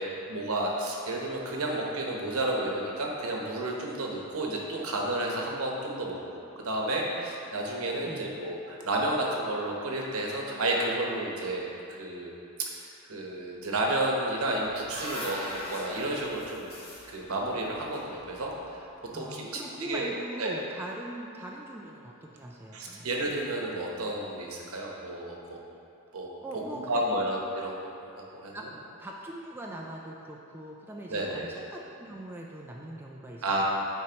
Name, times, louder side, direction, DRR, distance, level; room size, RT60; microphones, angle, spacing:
voice 1, 0.0-12.3 12.6-16.7 17.1-18.9 19.1-20.1 20.4-20.6 22.7-25.6 26.1-26.3 26.7-27.9 28.1-28.5 31.1-31.5 33.4-33.6, right 1 dB, 70° right, -1 dB, 1.0 m, -31 dB
sound 1, 14.4-18.7, left 1 dB, 25° left, 0.9 m, -40 dB
voice 2, 19.1-23.1 26.4-27.3 27.6-27.7 28.5-28.7 29.0-33.4, right 1 dB, 10° right, -2 dB, 0.3 m, -41 dB
9.3 x 4.4 x 2.9 m, 2.7 s
head